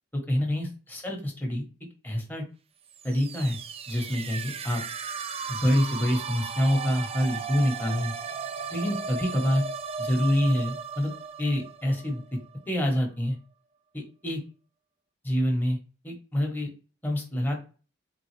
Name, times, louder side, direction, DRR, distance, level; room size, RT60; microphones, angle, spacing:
voice 1, 0.1-1.6 2.0-2.4 3.0-3.6 3.9-4.8 5.5-8.1 8.7-9.6 10.0-11.1 11.4-12.2 12.7-13.4 13.9-14.4 15.2-15.8 16.0-16.7 17.0-17.6, equal, 10° left, 0 dB, 1.2 m, -26 dB
sound 1, 2.9-12.6, right 6 dB, 30° right, 0.4 m, -36 dB
3.8 x 3.7 x 3.3 m, 0.35 s
head